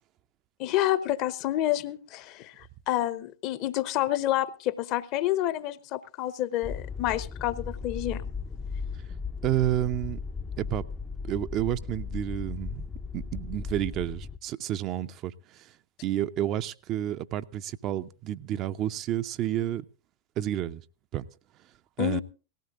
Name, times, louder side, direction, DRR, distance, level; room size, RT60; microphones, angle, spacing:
voice 1, 0.6-8.3 22.0-22.2, left 14 dB, 40° left, 0.8 m, -29 dB
sound 1, 6.6-14.4, left 5 dB, 15° left, 0.5 m, -36 dB
voice 2, 9.4-10.2 10.6-10.8 11.2-12.8 13.1-15.7 16.0-19.8 20.4-20.8 21.1-21.3 22.0-22.2, right 12 dB, 35° right, 0.6 m, -30 dB
18.5 x 16.0 x 2.5 m
figure-of-eight pair, 90°, 0 cm